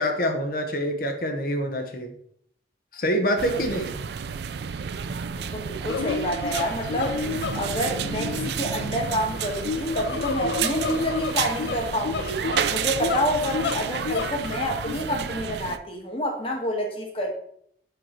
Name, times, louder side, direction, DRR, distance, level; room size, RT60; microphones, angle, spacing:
voice 1, 0.0-2.1 2.9-3.9, equal, 55° left, 5 dB, 0.9 m, -26 dB
sound 1, 3.4-15.8, right 7 dB, 70° right, 0.3 m, -31 dB
voice 2, 5.3-7.2 7.5-12.4 12.7-17.4, equal, 30° left, 1 dB, 1.2 m, -28 dB
sound 2, 5.9-14.9, left 5 dB, 70° left, 0.3 m, -31 dB
5.1 x 4.8 x 4.4 m, 0.68 s
head